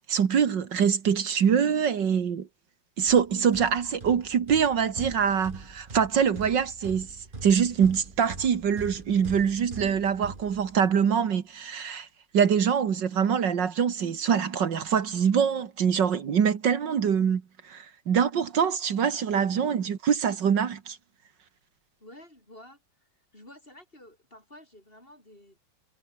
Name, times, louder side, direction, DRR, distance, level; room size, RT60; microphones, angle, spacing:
voice 1, 0.1-2.5 3.0-7.1 7.4-12.1 12.3-21.0, right 7 dB, 75° right, 2.3 m, -24 dB
sound 1, 3.1-11.1, right 3 dB, 25° right, 2.4 m, -43 dB
voice 2, 22.0-22.8 23.3-25.6, left 1 dB, 30° left, 8.4 m, -50 dB
omnidirectional pair, 2.0 m